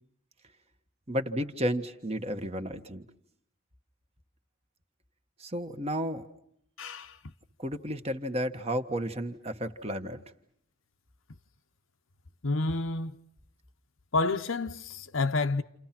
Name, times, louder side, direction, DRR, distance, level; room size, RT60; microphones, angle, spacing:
voice 1, 1.1-3.0 5.4-6.3 7.6-10.2, equal, 30° right, 1.4 m, -32 dB
voice 2, 6.8-7.1 12.4-13.1 14.1-15.6, left 3 dB, 70° left, 1.0 m, -29 dB
29.5 x 29.5 x 6.0 m
head